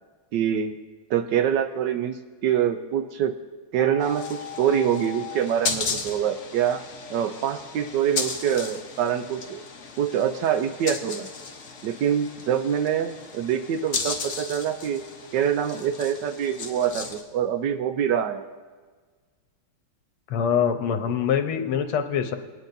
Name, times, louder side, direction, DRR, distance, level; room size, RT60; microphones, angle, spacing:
voice 1, 0.3-0.8 1.1-3.3 3.7-6.8 7.1-9.6 10.0-11.3 11.8-15.0 15.3-18.4, right 9 dB, 75° right, 8 dB, 1.0 m, -25 dB
sound 1, 3.8-5.4, left 13 dB, 65° left, 1.2 m, -38 dB
sound 2, 4.0-17.2, left 5 dB, 50° left, 1.0 m, -35 dB
voice 2, 20.3-22.4, left 7 dB, 85° left, 6 dB, 1.7 m, -24 dB
22.5 x 9.5 x 2.6 m, 1.5 s
omnidirectional pair, 2.3 m